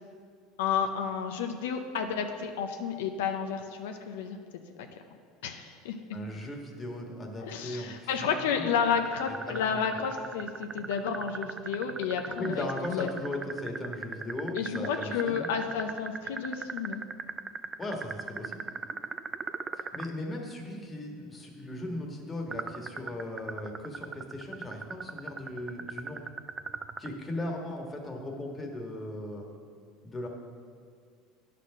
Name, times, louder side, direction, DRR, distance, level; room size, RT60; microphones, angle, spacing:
voice 1, 0.6-4.4 5.4-6.0 7.4-13.1 14.5-17.0, left 7 dB, 85° left, 5 dB, 0.6 m, -31 dB
voice 2, 6.1-8.6 9.3-9.8 12.4-15.5 17.8-18.6 19.7-26.3 27.0-29.5 30.0-30.3, left 1 dB, 20° left, 0 dB, 1.4 m, -37 dB
sound 1, 8.9-20.1 22.5-27.1, right 5 dB, 25° right, 0.3 m, -38 dB
9.8 x 4.2 x 6.2 m, 2.1 s
supercardioid pair, 110°, 0 cm